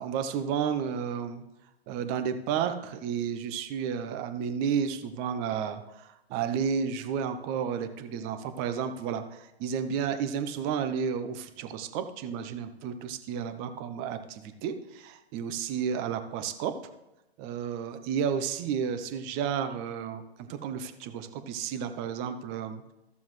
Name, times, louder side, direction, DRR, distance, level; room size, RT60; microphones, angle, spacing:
voice 1, 0.0-1.4 1.9-16.7 17.4-22.9, right 7 dB, 30° right, 10 dB, 0.8 m, -32 dB
14.5 x 7.0 x 3.2 m, 0.95 s
hypercardioid pair, 120°, 32 cm